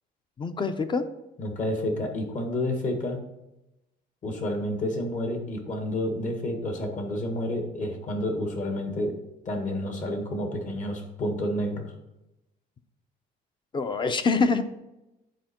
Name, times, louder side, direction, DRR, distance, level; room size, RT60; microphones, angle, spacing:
voice 1, 0.4-1.0 13.7-14.6, left 4 dB, 30° left, 10 dB, 0.7 m, -25 dB
voice 2, 1.4-3.2 4.2-9.2 9.5-11.9, left 1 dB, 45° left, 4 dB, 1.7 m, -30 dB
10.0 x 4.4 x 4.4 m, 0.93 s
cardioid pair, 110°, 17 cm